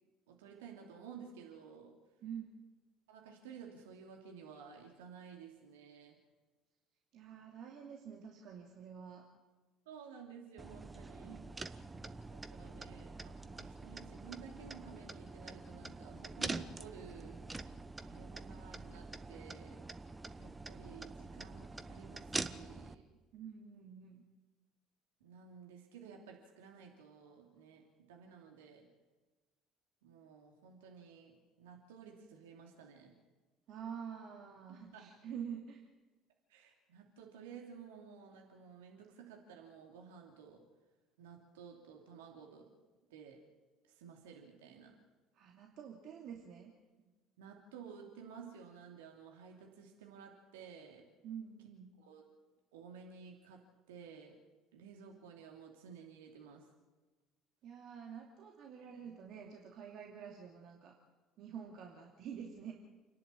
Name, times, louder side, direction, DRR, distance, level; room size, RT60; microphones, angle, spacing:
voice 1, 0.3-1.9 3.1-6.2 9.9-11.4 12.3-17.4 18.0-19.8 20.4-23.1 25.2-28.9 30.0-33.1 34.9-35.1 36.5-40.6 41.2-42.7 43.1-43.4 43.9-45.0 47.4-51.0 52.0-52.3 52.7-53.6 53.9-54.4 54.7-56.7 58.9-59.0, right 7 dB, 75° right, 1 dB, 2.8 m, -54 dB
voice 2, 7.1-9.2 11.2-11.4 23.3-24.2 33.7-35.9 45.3-46.7 51.2-51.9 57.6-60.9 61.4-62.7, right 7 dB, 55° right, 0 dB, 2.7 m, -47 dB
sound 1, 10.6-22.9, right 3 dB, 20° right, 1.2 m, -45 dB
29.0 x 10.5 x 8.8 m, 1.2 s
figure-of-eight pair, 60°, 0 cm